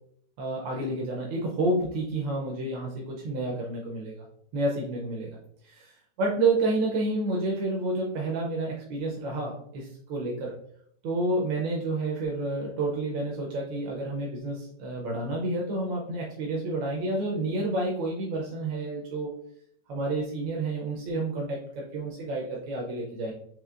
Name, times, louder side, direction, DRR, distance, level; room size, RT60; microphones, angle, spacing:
voice 1, 0.4-4.3 4.5-5.3 5.6-10.5 11.0-19.3 19.9-23.3, right 2 dB, 90° right, -2 dB, 1.4 m, -29 dB
5.2 x 2.8 x 2.4 m, 0.68 s
omnidirectional pair, 2.0 m